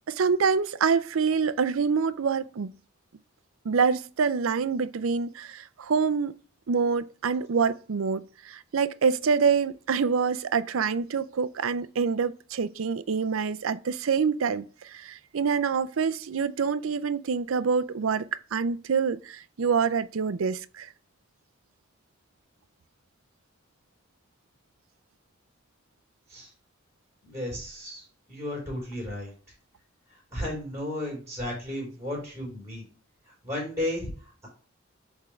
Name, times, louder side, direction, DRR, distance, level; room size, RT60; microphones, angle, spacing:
voice 1, 0.1-2.7 3.6-6.3 6.7-20.9, right 5 dB, 90° right, 0.5 m, -26 dB
voice 2, 27.2-29.3 30.3-32.8 33.3-34.5, left 1 dB, 15° right, 3.4 m, -34 dB
8.3 x 3.7 x 3.2 m
head